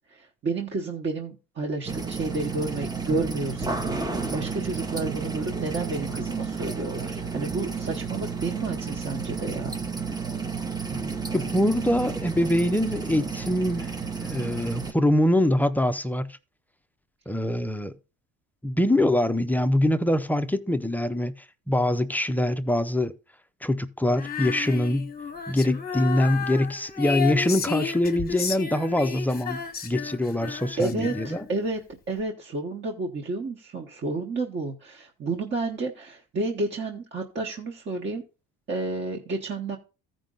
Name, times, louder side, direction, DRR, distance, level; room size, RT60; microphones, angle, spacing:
voice 1, 0.1-9.8 30.8-31.8 32.1-38.2 38.7-39.8, right 3 dB, 30° right, 1.1 m, -31 dB
sound 1, 1.9-14.9, right 5 dB, 10° right, 0.8 m, -32 dB
voice 2, 11.3-14.0 14.2-16.4 17.3-17.9 18.6-21.3 21.7-23.1 23.6-25.1 25.5-31.4, left 1 dB, 5° left, 0.4 m, -24 dB
Female singing, 24.1-31.6, left 7 dB, 25° left, 1.0 m, -33 dB
14.0 x 5.2 x 3.8 m
cardioid pair, 135°, 37 cm